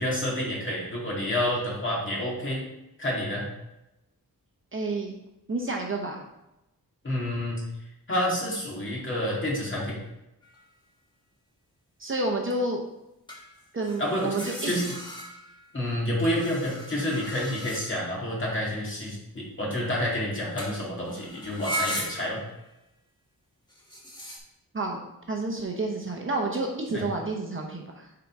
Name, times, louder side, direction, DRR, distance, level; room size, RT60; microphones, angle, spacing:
voice 1, 0.0-2.6 3.0-3.5 7.0-7.6 8.1-10.0 14.0-14.9 15.7-22.4 26.9-27.0, left 1 dB, 35° left, -4 dB, 2.1 m, -29 dB
voice 2, 4.7-5.2 5.5-6.2 12.0-12.8 13.7-14.7 24.7-25.0 25.3-28.1, right 2 dB, 35° right, 1 dB, 0.7 m, -30 dB
sound 1, 10.4-10.7 13.3-15.7 16.2-18.2 20.6-20.8 21.1-22.5 23.7-24.4, equal, 10° left, 1.2 m, -37 dB
7.1 x 3.9 x 4.8 m, 0.91 s
wide cardioid pair, 180°, 36 cm